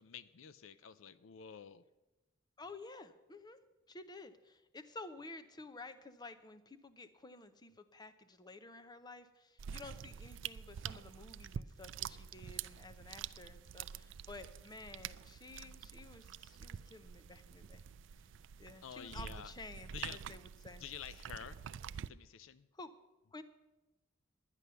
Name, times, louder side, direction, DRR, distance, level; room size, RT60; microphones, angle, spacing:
voice 1, 0.0-1.8 18.8-19.5 19.9-20.2 20.8-21.6 22.1-22.7, left 8 dB, 80° left, 15 dB, 0.5 m, -49 dB
voice 2, 2.6-3.6 3.9-17.8 18.6-20.8 22.7-22.9 23.3-23.4, left 3 dB, 20° left, 11 dB, 0.7 m, -52 dB
sound 1, 9.6-22.1, right 8 dB, 65° right, 0.3 m, -47 dB
11.0 x 9.9 x 6.8 m, 1.0 s
head